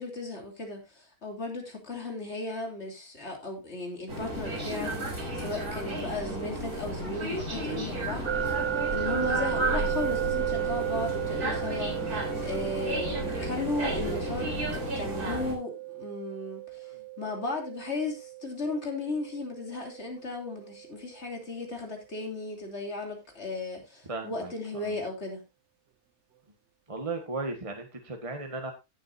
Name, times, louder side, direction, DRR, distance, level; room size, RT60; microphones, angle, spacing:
voice 1, 0.0-8.3 8.9-14.5 14.9-16.9 17.2-25.4, left 2 dB, 45° left, 3.4 m, -35 dB
sound 1, 4.1-15.5, right 1 dB, 85° right, 4.2 m, -33 dB
sound 2, 8.3-21.2, right 14 dB, 55° right, 1.0 m, -35 dB
voice 2, 24.1-25.0 26.9-28.7, right 3 dB, 20° right, 1.6 m, -36 dB
16.5 x 7.5 x 2.7 m
omnidirectional pair, 1.6 m